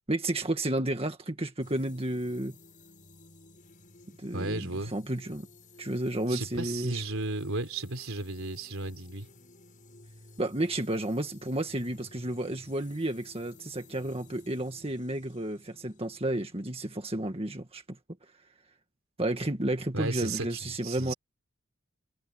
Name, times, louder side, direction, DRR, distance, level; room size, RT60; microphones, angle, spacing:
voice 1, 0.1-2.6 4.2-5.5 5.8-7.0 10.4-17.8 19.2-21.1, right 1 dB, 25° right, 1.9 m, -32 dB
sound 1, 1.6-17.3, left 2 dB, 40° left, 6.9 m, -55 dB
voice 2, 4.3-4.9 6.3-9.3 19.9-21.1, right 2 dB, 75° right, 3.8 m, -34 dB
head